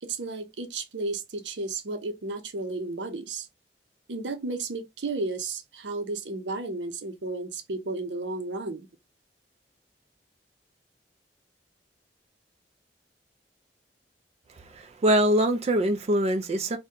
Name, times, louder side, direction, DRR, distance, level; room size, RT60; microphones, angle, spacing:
voice 1, 0.0-3.5 4.1-8.9, right 3 dB, 85° right, 0.6 m, -33 dB
voice 2, 14.7-16.8, right 1 dB, 40° right, 0.4 m, -23 dB
2.7 x 2.2 x 3.5 m
head